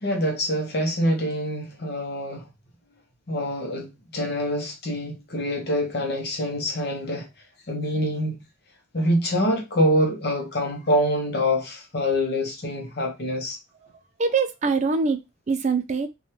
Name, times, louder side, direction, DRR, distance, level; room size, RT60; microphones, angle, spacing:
voice 1, 0.0-2.4 3.3-7.3 7.7-8.4 8.9-13.6, equal, 50° left, 0.8 m, -25 dB
voice 2, 14.2-16.1, right 4 dB, 35° right, 0.4 m, -24 dB
3.2 x 2.3 x 2.8 m
head